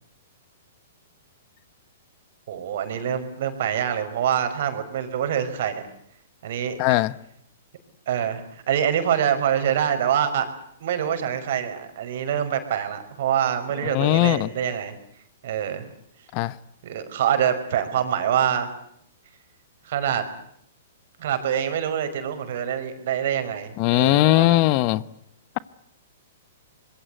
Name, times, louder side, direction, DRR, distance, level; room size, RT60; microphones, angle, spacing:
voice 1, 2.5-5.8 6.4-6.8 8.1-10.5 10.8-14.9 15.4-15.9 16.8-18.7 19.8-20.2 21.2-24.6, right 9 dB, 60° right, 5.5 m, -25 dB
voice 2, 6.8-7.1 13.8-14.5 16.3-16.6 23.8-25.0, left 18 dB, 40° left, 1.0 m, -19 dB
25.5 x 21.5 x 9.3 m
hypercardioid pair, 130°, 0 cm